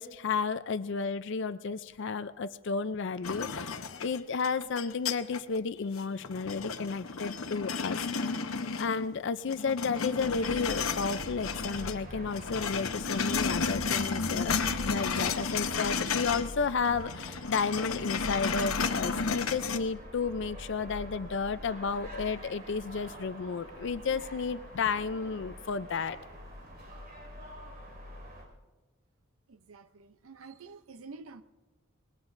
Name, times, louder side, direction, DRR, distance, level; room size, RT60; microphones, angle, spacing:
voice 1, 0.0-8.4 8.7-26.2, left 5 dB, 60° left, 0.5 m, -32 dB
sound 1, 3.2-5.6 6.0-9.2 9.5-12.0 12.3-16.5 16.8-19.8, left 5 dB, 90° left, 0.9 m, -33 dB
sound 2, 10.2-28.4, equal, 45° right, 5.2 m, -44 dB
voice 2, 29.5-31.4, right 4 dB, 85° right, 0.6 m, -48 dB
25.5 x 21.0 x 2.6 m
head